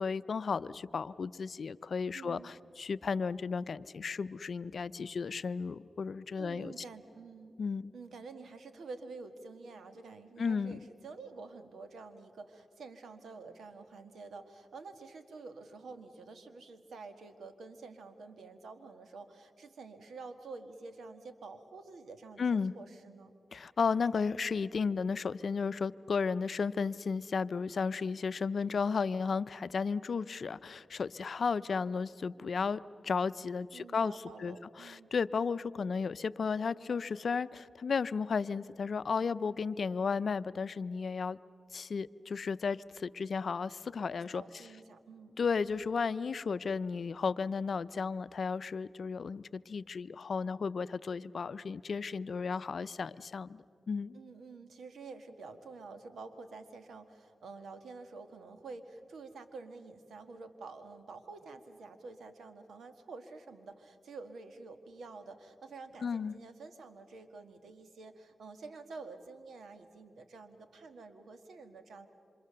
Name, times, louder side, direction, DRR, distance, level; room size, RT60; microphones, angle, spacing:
voice 1, 0.0-6.7 7.6-7.9 10.4-10.8 22.4-22.7 23.5-41.4 41.7-44.6 45.4-54.2 66.0-66.4, left 5 dB, 70° left, 15 dB, 0.5 m, -34 dB
voice 2, 2.1-2.5 6.4-7.5 7.9-23.3 33.7-35.1 44.3-45.4 54.1-72.1, right 4 dB, 90° right, 8 dB, 1.5 m, -49 dB
27.5 x 26.0 x 6.8 m, 2.6 s
cardioid pair, 50°, 0 cm